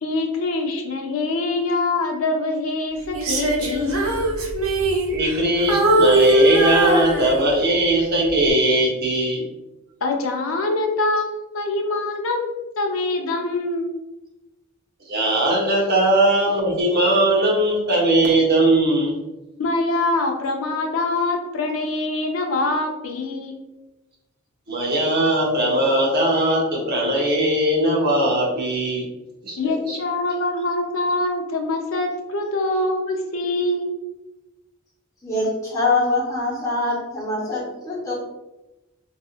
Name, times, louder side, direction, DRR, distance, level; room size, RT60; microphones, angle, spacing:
voice 1, 0.0-4.1 10.0-13.9 19.6-23.6 29.6-34.0, left 2 dB, 70° left, 2 dB, 0.5 m, -24 dB
Female singing, 3.1-5.4 5.7-7.7 8.3-8.5, right 1 dB, 75° right, 0.6 m, -20 dB
voice 2, 5.0-9.4 15.1-19.2 24.7-29.1 29.4-30.0, right 1 dB, 50° right, -3 dB, 0.9 m, -19 dB
voice 3, 35.2-38.1, left 2 dB, 15° left, -7 dB, 1.1 m, -23 dB
3.4 x 2.6 x 2.4 m, 1.0 s
head